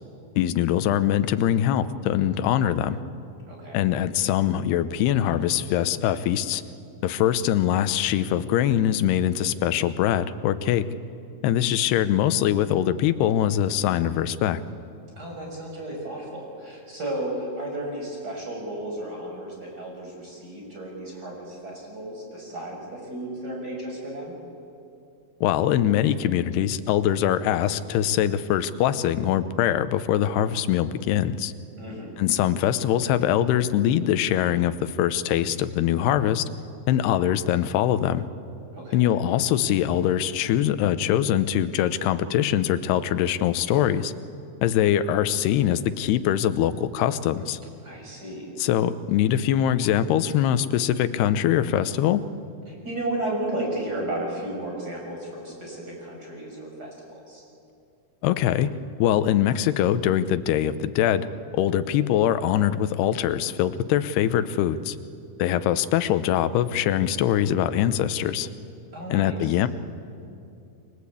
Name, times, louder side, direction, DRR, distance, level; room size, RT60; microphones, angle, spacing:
voice 1, 0.4-3.0 3.7-6.6 7.0-10.9 11.4-14.6 25.4-31.5 32.2-36.4 36.9-38.3 38.9-44.1 44.6-47.6 48.6-52.2 58.2-58.7 59.0-61.3 61.5-65.0 65.4-68.5 69.1-69.7, left 11 dB, 80° left, 12 dB, 2.9 m, -23 dB
voice 2, 3.5-3.8 15.2-24.3 31.8-32.2 38.7-39.1 47.8-48.5 52.7-57.4 68.9-69.4, right 1 dB, 20° right, 0 dB, 6.4 m, -33 dB
29.0 x 23.5 x 8.4 m, 2.6 s
omnidirectional pair, 4.7 m